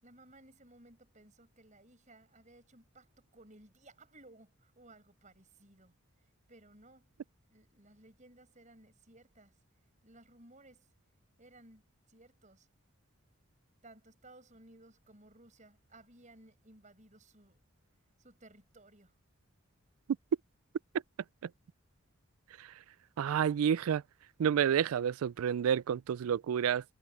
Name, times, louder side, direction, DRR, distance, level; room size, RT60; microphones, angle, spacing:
voice 1, 0.0-7.1 7.4-10.9 11.4-12.7 13.8-17.6 18.2-19.2, right 2 dB, 35° right, 5.6 m, -59 dB
voice 2, 23.2-24.0 24.4-26.8, right 8 dB, 85° right, 0.3 m, -29 dB
head